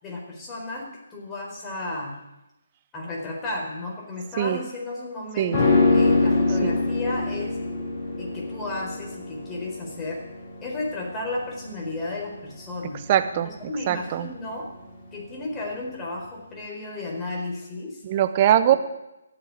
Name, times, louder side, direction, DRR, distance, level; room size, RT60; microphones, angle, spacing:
voice 1, 0.0-2.1 2.9-7.6 8.2-10.2 10.6-13.0 13.4-14.7 15.1-18.0 18.7-18.8, left 2 dB, 15° left, -1 dB, 4.1 m, -33 dB
sound 1, 5.5-14.9 15.2-15.3, left 3 dB, 35° left, 7.3 m, -25 dB
voice 2, 13.1-13.5 13.9-14.3 18.0-18.7, right 11 dB, 30° right, 10 dB, 1.0 m, -21 dB
15.5 x 7.4 x 9.9 m, 0.94 s
figure-of-eight pair, 145°, 0 cm